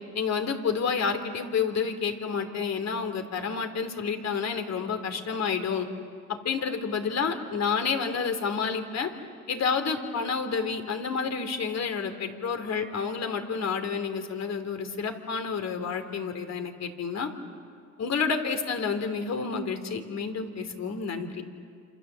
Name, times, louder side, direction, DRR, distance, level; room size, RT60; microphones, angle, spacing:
voice 1, 0.1-5.9 6.3-9.1 9.5-17.3 18.0-21.4, left 5 dB, 55° left, 7 dB, 3.0 m, -29 dB
28.0 x 27.0 x 7.5 m, 2.1 s
cardioid pair, 85°, 32 cm